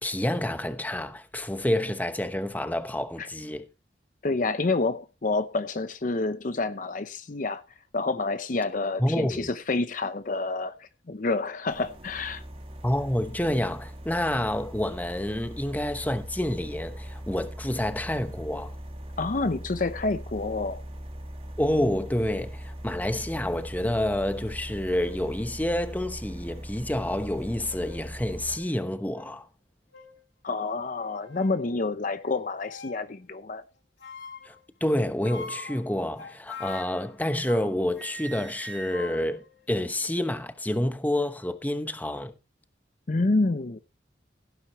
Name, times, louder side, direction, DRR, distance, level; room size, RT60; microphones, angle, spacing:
voice 1, 0.0-3.7 9.0-9.5 12.8-18.7 21.6-29.5 34.4-34.5 34.8-42.3, left 1 dB, 10° left, 0.9 m, -28 dB
voice 2, 4.2-7.6 7.9-12.4 19.2-20.8 30.4-33.6 43.1-43.8, left 3 dB, 45° left, 0.7 m, -28 dB
sound 1, 11.7-28.6, equal, 30° right, 1.6 m, -40 dB
sound 2, 24.5-24.6 24.9-25.3 26.0-26.1 27.4-28.1 28.5-28.7 29.1-29.3 29.9-30.2 30.9-31.6 32.6-33.1 34.0-34.6 35.2-37.7 38.0-40.3, left 2 dB, 85° left, 1.8 m, -43 dB
16.5 x 9.4 x 3.0 m
head